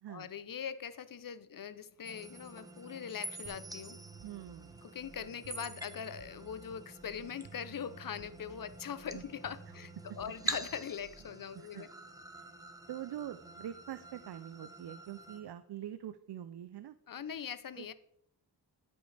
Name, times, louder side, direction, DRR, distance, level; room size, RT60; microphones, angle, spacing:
voice 1, 0.1-4.0 4.8-11.9 17.1-17.9, left 8 dB, 50° left, 0.6 m, -42 dB
sound 1, 2.0-15.4, right 1 dB, 10° right, 1.0 m, -47 dB
sound 2, 3.5-11.5, right 6 dB, 85° right, 1.0 m, -56 dB
voice 2, 4.2-4.8 9.1-9.2 11.6-11.9 12.9-16.9 17.8-17.9, right 11 dB, 65° right, 0.5 m, -44 dB
13.0 x 5.4 x 3.3 m
cardioid pair, 55°, 42 cm